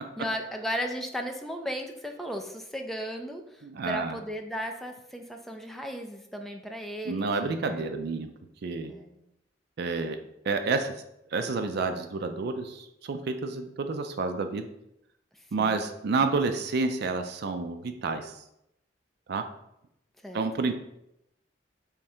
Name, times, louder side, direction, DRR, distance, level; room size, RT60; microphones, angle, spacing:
voice 1, 0.2-7.8 8.9-9.2 15.6-15.8 20.2-20.5, equal, ahead, 3 dB, 0.4 m, -35 dB
voice 2, 3.6-4.2 7.0-8.3 8.6-8.9 9.8-10.2 10.4-10.9 11.3-14.7 15.5-18.4 19.3-19.5 20.3-20.8, right 4 dB, 60° right, 7 dB, 0.4 m, -29 dB
3.6 x 3.2 x 4.4 m, 0.81 s
head